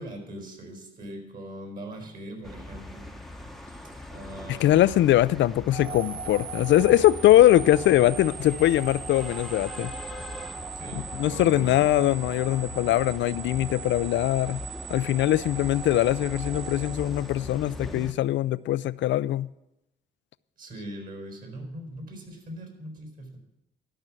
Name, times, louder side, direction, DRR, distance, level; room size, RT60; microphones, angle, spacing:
voice 1, 0.0-3.1 3.6-5.0 8.0-8.1 10.7-12.5 20.6-23.4, right 1 dB, 45° right, 4.3 m, -41 dB
sound 1, 2.4-18.1, left 2 dB, ahead, 1.0 m, -40 dB
voice 2, 4.5-9.9 11.1-14.6 14.9-19.5, left 13 dB, 70° left, 0.4 m, -22 dB
sound 2, 5.7-17.9, right 6 dB, 25° right, 0.3 m, -40 dB
12.5 x 6.0 x 7.7 m
cardioid pair, 90°, 20 cm